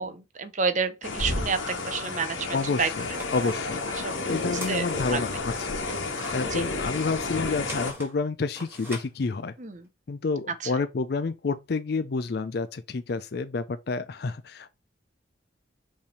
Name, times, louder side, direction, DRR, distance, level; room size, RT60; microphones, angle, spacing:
voice 1, 0.0-2.5 2.8-2.9 4.0-4.4 4.7-5.2 6.5-6.6 9.6-9.9 10.6-10.7, right 5 dB, 40° right, 0.7 m, -29 dB
sound 1, 1.0-7.9, left 3 dB, 80° left, 1.5 m, -31 dB
sound 2, 2.4-2.5 2.9-5.3 5.7-9.8, equal, 10° right, 2.0 m, -43 dB
voice 2, 2.5-3.8 4.3-5.8 6.3-9.5 10.1-14.7, left 4 dB, 55° left, 0.4 m, -29 dB
5.4 x 3.4 x 5.1 m
head